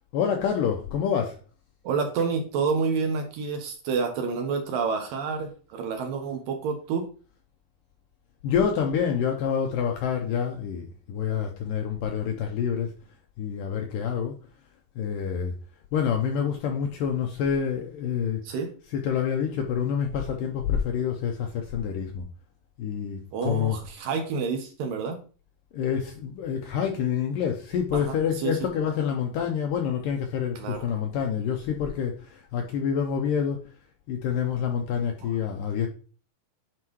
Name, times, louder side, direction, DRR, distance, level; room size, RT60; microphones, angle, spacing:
voice 1, 0.1-1.4 8.4-13.0 13.4-14.4 15.0-15.6 15.9-18.4 18.9-22.3 22.8-23.8 25.7-33.6 34.1-35.9, left 7 dB, 80° left, 2.0 m, -27 dB
voice 2, 1.8-7.0 18.4-18.7 23.3-25.2 27.9-28.2 28.4-28.7 30.6-30.9 35.2-35.3, right 5 dB, 70° right, 2.3 m, -28 dB
9.6 x 4.7 x 3.1 m
omnidirectional pair, 4.6 m